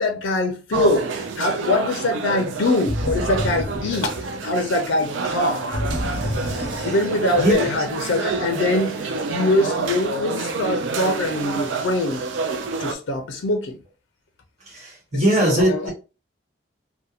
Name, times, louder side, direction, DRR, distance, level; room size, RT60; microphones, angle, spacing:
voice 1, 0.0-5.8 6.8-12.2 12.8-13.8 15.1-15.9, left 2 dB, 90° left, 0.5 m, -23 dB
sound 1, 0.7-12.9, right 4 dB, 80° right, 0.4 m, -28 dB
sound 2, 2.9-4.6 5.7-7.4, equal, 60° left, 1.0 m, -28 dB
voice 2, 7.4-7.7 14.7-15.9, right 1 dB, 35° right, 1.0 m, -20 dB
2.8 x 2.2 x 2.4 m
head